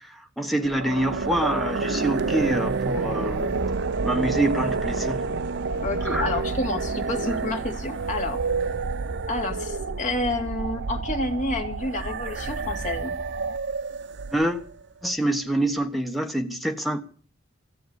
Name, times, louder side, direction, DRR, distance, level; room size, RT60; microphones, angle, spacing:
voice 1, 0.4-3.5 4.0-5.2 6.0-6.3 14.3-14.6 15.0-17.0, right 1 dB, ahead, 1.2 m, -26 dB
sound 1, 0.6-14.7, right 4 dB, 55° right, 0.7 m, -29 dB
voice 2, 5.8-8.4 9.3-13.2, left 2 dB, 40° left, 2.4 m, -29 dB
15.0 x 8.3 x 8.2 m
head